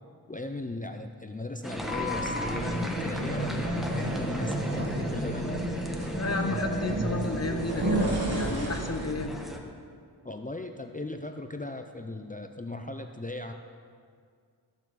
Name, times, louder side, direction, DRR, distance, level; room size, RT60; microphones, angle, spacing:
voice 1, 0.3-5.5 10.2-13.5, left 2 dB, 20° left, 5 dB, 0.5 m, -37 dB
sound 1, 1.6-9.6, equal, ahead, 1.1 m, -37 dB
sound 2, 1.7-9.2, right 1 dB, 60° right, 1.9 m, -31 dB
voice 2, 6.1-9.4, left 2 dB, 35° left, 6 dB, 0.9 m, -32 dB
13.5 x 7.0 x 4.1 m, 2.1 s
wide cardioid pair, 50°, 42 cm